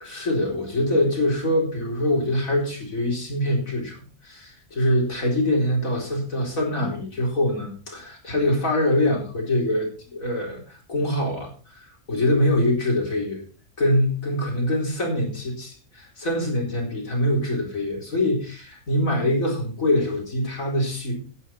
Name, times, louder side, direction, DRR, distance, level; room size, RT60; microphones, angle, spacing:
voice 1, 0.0-13.4 13.8-21.1, left 1 dB, 70° left, -1 dB, 4.5 m, -24 dB
12.0 x 10.0 x 4.3 m, 0.38 s
omnidirectional pair, 1.5 m